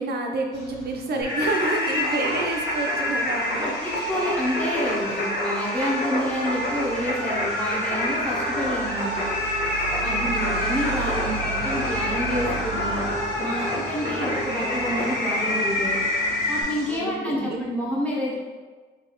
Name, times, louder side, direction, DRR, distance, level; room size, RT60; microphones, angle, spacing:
voice 1, 0.0-3.7 10.0-10.6 14.0-14.5 16.9-17.7, right 2 dB, 55° right, 2 dB, 0.6 m, -29 dB
sound 1, 0.5-17.0, right 4 dB, 80° left, 1.2 m, -38 dB
Singing, 1.2-16.6, left 1 dB, 50° left, 0.9 m, -27 dB
voice 2, 3.6-9.3 10.0-13.1 13.4-16.0 16.5-18.4, equal, 5° left, -5 dB, 0.8 m, -28 dB
3.3 x 2.9 x 2.9 m, 1.4 s
cardioid pair, 90°, 20 cm